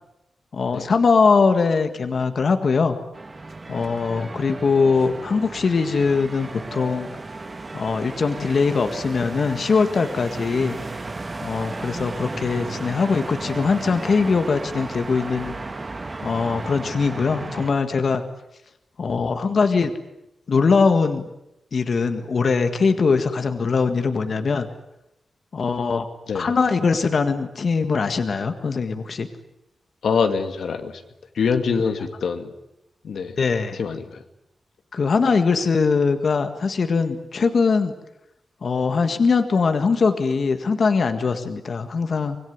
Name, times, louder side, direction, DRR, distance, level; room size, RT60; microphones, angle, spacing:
voice 1, 0.5-3.0 3.7-7.1 7.7-10.8 11.4-15.5 16.2-18.2 19.0-19.9 20.5-21.2 21.7-24.7 25.5-26.1 26.3-29.3 33.4-33.8 34.9-37.9 38.6-42.4, left 4 dB, 50° left, 7 dB, 1.8 m, -21 dB
sound 1, 3.1-17.7, right 3 dB, 25° right, 1.4 m, -34 dB
voice 2, 30.0-30.9 31.4-32.5 33.0-33.3 33.8-34.2, left 5 dB, 85° left, 7 dB, 2.3 m, -24 dB
25.5 x 21.0 x 9.5 m, 0.84 s
wide cardioid pair, 160°, 0 cm